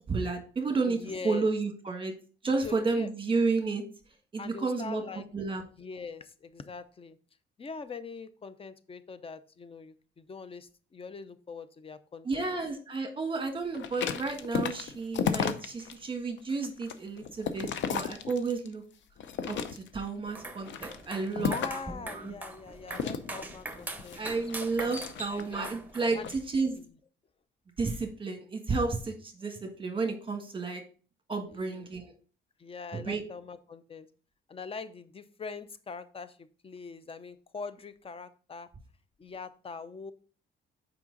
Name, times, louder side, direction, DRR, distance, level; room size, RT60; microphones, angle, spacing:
voice 1, 0.1-2.1 2.4-3.8 4.3-5.6 12.2-18.8 19.5-22.3 24.1-26.8 27.8-30.8 31.3-32.1 32.9-33.2, right 3 dB, 25° right, 4 dB, 1.4 m, -32 dB
voice 2, 0.9-1.5 2.5-3.1 4.4-5.2 5.8-7.2 7.6-12.5 21.3-24.2 25.3-25.7 26.2-26.3 26.8-26.9 31.5-31.8 32.6-34.1 34.5-38.7 39.2-40.1, left 4 dB, 30° left, 13 dB, 0.6 m, -42 dB
sound 1, 13.7-15.9 16.4-18.7 19.2-20.1 20.6-21.9 22.9-25.6 26.1-26.4, left 7 dB, 70° left, 0.7 m, -34 dB
sound 2, 20.3-26.2, right 2 dB, 10° right, 1.2 m, -42 dB
6.0 x 5.0 x 3.9 m, 0.39 s
cardioid pair, 90°, 20 cm